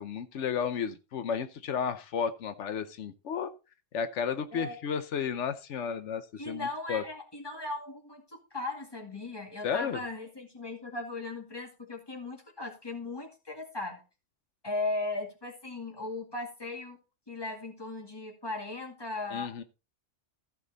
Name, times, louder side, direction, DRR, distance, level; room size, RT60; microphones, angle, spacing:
voice 1, 0.0-3.5 3.9-7.0 9.6-10.0 19.3-19.6, left 7 dB, 85° left, 11 dB, 1.1 m, -33 dB
voice 2, 6.4-14.0 14.6-17.0 17.3-19.6, left 2 dB, 20° left, 2 dB, 2.3 m, -37 dB
14.5 x 6.1 x 4.0 m, 0.31 s
omnidirectional pair, 1.2 m